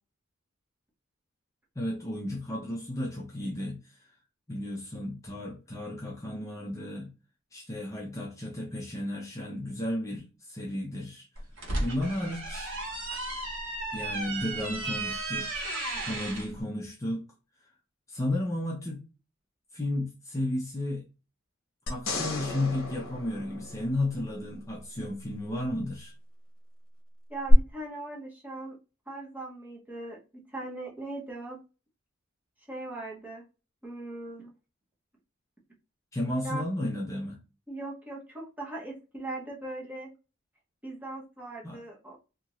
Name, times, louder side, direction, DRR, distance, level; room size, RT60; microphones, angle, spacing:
voice 1, 1.8-4.0 4.5-7.1 7.5-11.3 11.8-12.7 13.9-17.2 18.1-19.1 19.7-21.0 21.9-26.1 36.1-37.4 41.6-41.8, left 1 dB, 15° left, 0.5 m, -33 dB
sound 1, 11.4-16.5, right 2 dB, 65° right, 1.1 m, -34 dB
sound 2, 21.9-24.4 27.5-27.6, left 2 dB, 70° left, 0.8 m, -35 dB
voice 2, 27.3-28.8 29.1-31.6 32.7-33.4 33.8-34.5 36.4-36.6 37.7-40.1 40.8-42.2, right 2 dB, 10° right, 0.8 m, -39 dB
2.7 x 2.4 x 3.0 m
head